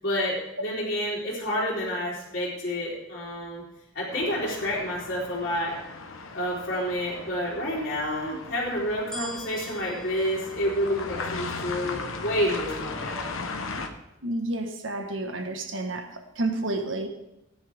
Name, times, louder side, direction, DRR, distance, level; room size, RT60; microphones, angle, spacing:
voice 1, 0.0-3.6 3.9-5.8 6.3-13.3, equal, 55° left, -10 dB, 3.6 m, -29 dB
sound 1, 4.1-13.9, left 3 dB, 90° left, 1.2 m, -37 dB
sound 2, 9.1-11.5 12.1-12.2, equal, 5° left, 2.9 m, -42 dB
voice 2, 14.2-16.0 16.4-17.1, right 2 dB, 70° right, 5 dB, 1.5 m, -30 dB
17.5 x 9.9 x 3.6 m, 0.89 s
head